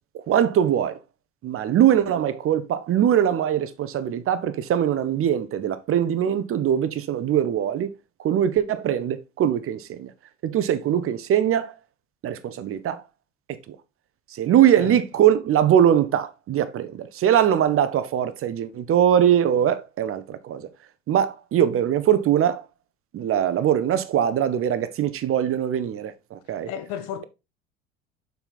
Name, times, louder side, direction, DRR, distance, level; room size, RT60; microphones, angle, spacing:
voice 1, 0.1-1.0 1.4-7.9 8.2-10.1 10.4-11.7 12.2-13.0 13.5-13.8 14.3-20.7 21.1-22.6 23.1-26.7, right 10 dB, 40° right, 1.0 m, -22 dB
voice 2, 26.7-27.2, left 9 dB, 60° left, 1.2 m, -33 dB
7.1 x 5.4 x 4.0 m
hypercardioid pair, 70°, 34 cm